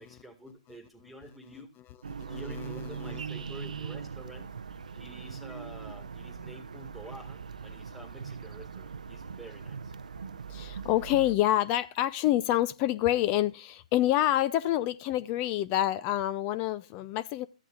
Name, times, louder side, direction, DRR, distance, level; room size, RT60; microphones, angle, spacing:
voice 1, 0.0-1.7 2.3-4.5 4.9-10.0, right 1 dB, ahead, 1.9 m, -49 dB
sound 1, 2.0-11.3, right 6 dB, 80° right, 0.6 m, -41 dB
voice 2, 2.3-3.2 10.5-17.5, left 13 dB, 30° left, 0.6 m, -27 dB
14.0 x 8.4 x 2.4 m
hypercardioid pair, 135°, 4 cm